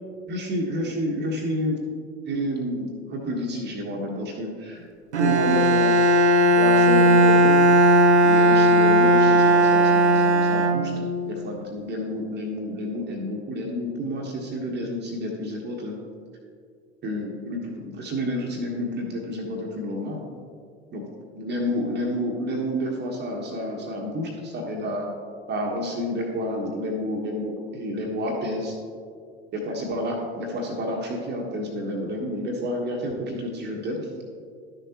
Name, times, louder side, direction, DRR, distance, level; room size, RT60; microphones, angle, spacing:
voice 1, 0.3-1.8 2.2-4.8 5.2-5.9 6.6-7.6 8.2-10.9 11.3-16.0 17.0-20.2 20.9-21.0 21.3-25.1 25.5-28.8 29.5-34.0, equal, 30° right, 0 dB, 1.3 m, -29 dB
Bowed string instrument, 5.1-11.3, right 1 dB, 85° right, 0.6 m, -17 dB
11.5 x 6.7 x 2.9 m, 2.2 s
figure-of-eight pair, 75°, 33 cm